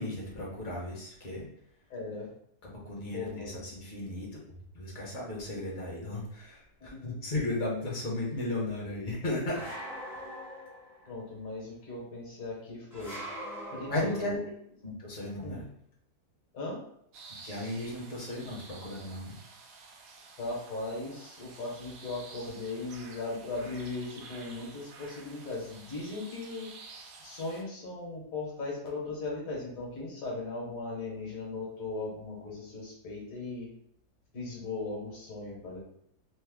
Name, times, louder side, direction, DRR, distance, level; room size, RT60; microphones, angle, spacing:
voice 1, 0.0-1.5 2.6-9.7 13.9-14.4 14.8-15.7 17.4-19.4, left 1 dB, 40° left, -4 dB, 0.9 m, -35 dB
voice 2, 1.9-2.3 3.1-3.6 6.9-7.2 11.1-13.2 13.7-14.4 15.4-15.6 16.5-16.8 20.4-33.7 34.3-35.8, left 3 dB, 60° left, -3 dB, 1.4 m, -38 dB
sound 1, 9.5-11.1 12.9-14.3, equal, ahead, 0.6 m, -42 dB
sound 2, 17.1-27.6, right 4 dB, 70° right, 1.0 m, -51 dB
3.3 x 2.1 x 3.4 m, 0.73 s
omnidirectional pair, 1.7 m